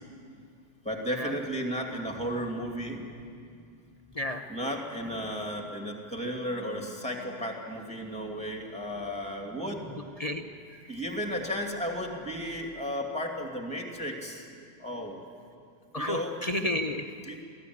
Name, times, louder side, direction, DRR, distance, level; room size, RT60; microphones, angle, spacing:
voice 1, 0.8-3.0 4.5-9.9 10.9-14.5 14.8-15.2 16.0-16.4 17.3-17.4, equal, 5° left, 1 dB, 2.7 m, -34 dB
voice 2, 4.1-4.5 10.2-10.4 10.7-10.8 15.9-17.1, left 1 dB, 35° left, 4 dB, 0.7 m, -31 dB
23.5 x 15.5 x 9.8 m, 2.4 s
omnidirectional pair, 1.5 m